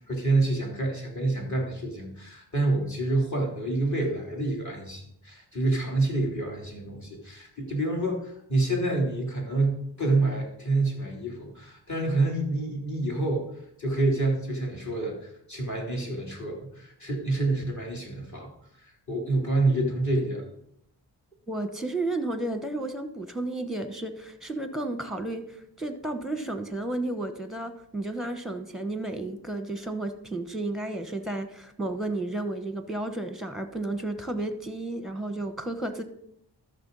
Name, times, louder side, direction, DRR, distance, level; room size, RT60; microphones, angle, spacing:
voice 1, 0.0-13.5 13.8-18.5 19.1-20.4, right 2 dB, 40° left, -1 dB, 3.3 m, -27 dB
voice 2, 21.5-36.0, right 2 dB, ahead, 8 dB, 1.1 m, -32 dB
13.0 x 6.1 x 4.0 m, 0.73 s
cardioid pair, 60°, 44 cm